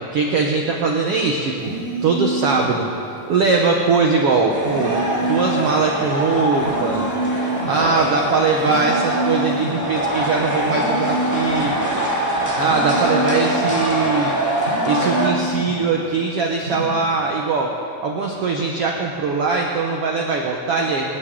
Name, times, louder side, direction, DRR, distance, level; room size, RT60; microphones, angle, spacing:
voice 1, 0.0-1.7 2.0-2.9 3.3-7.1 7.7-11.7 12.6-14.3 14.8-17.7 18.0-21.2, right 4 dB, 85° right, 0 dB, 1.3 m, -21 dB
sound 1, 1.6-2.8 4.6-5.8 6.6-7.8 8.6-9.8 10.6-11.8 12.6-13.8 14.6-15.8 16.6-16.9, right 2 dB, 40° right, 2.4 m, -27 dB
sound 2, 4.5-15.3, right 1 dB, 10° left, 0.9 m, -23 dB
23.5 x 10.5 x 3.8 m, 2.8 s
omnidirectional pair, 4.0 m